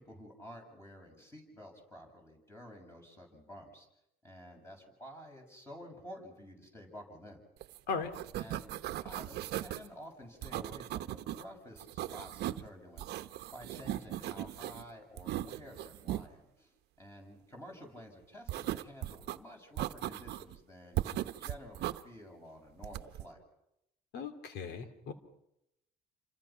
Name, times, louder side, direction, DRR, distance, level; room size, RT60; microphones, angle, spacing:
voice 1, 0.0-3.9 4.2-7.4 8.4-8.7 9.0-13.2 13.5-23.4, equal, 15° left, 2 dB, 7.5 m, -51 dB
sound 1, 7.6-7.8 8.0-9.9 10.4-11.4 11.8-12.7 13.0-14.8 15.2-16.3 18.5-19.4 19.8-20.6 21.0-22.0 22.8-23.3, right 14 dB, 75° right, 1.0 m, -38 dB
voice 2, 24.1-25.1, left 5 dB, 80° left, 8 dB, 3.1 m, -37 dB
28.5 x 26.0 x 6.0 m, 0.83 s
cardioid pair, 110°, 17 cm